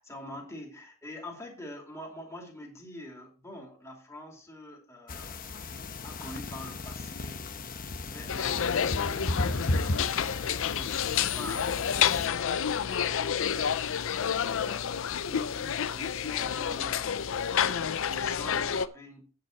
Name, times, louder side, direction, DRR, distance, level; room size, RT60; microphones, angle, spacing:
voice 1, 0.0-5.5 6.0-7.5 8.0-15.0 15.3-19.3, left 1 dB, 15° left, 0 dB, 2.8 m, -46 dB
sound 1, 5.1-12.3, left 2 dB, 40° left, 1.0 m, -35 dB
sound 2, 8.3-18.9, left 8 dB, 65° left, 0.5 m, -29 dB
9.5 x 7.8 x 4.5 m, 0.40 s
head